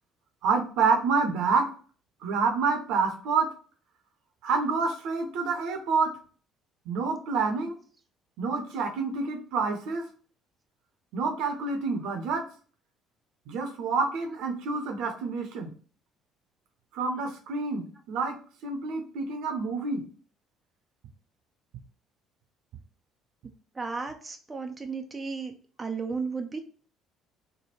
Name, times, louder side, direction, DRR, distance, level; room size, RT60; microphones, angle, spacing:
voice 1, 0.4-1.7 2.2-3.5 4.4-6.1 6.9-7.7 8.4-10.1 11.1-12.4 13.5-15.7 16.9-18.4 18.6-20.0, right 4 dB, 70° right, 4 dB, 0.8 m, -28 dB
voice 2, 23.8-26.6, right 4 dB, 25° right, 5 dB, 0.5 m, -34 dB
3.4 x 2.2 x 4.3 m, 0.41 s
hypercardioid pair, 55°, 0 cm